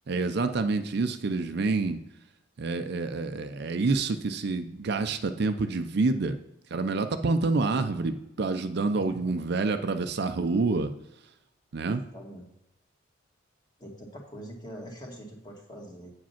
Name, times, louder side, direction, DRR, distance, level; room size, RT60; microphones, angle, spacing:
voice 1, 0.1-2.0 2.6-6.4 6.7-10.9 11.7-12.0, right 3 dB, 55° right, 8 dB, 0.5 m, -27 dB
voice 2, 8.9-9.3 11.8-12.5 13.8-16.1, equal, 20° left, -1 dB, 1.7 m, -44 dB
8.3 x 5.0 x 5.7 m, 0.88 s
head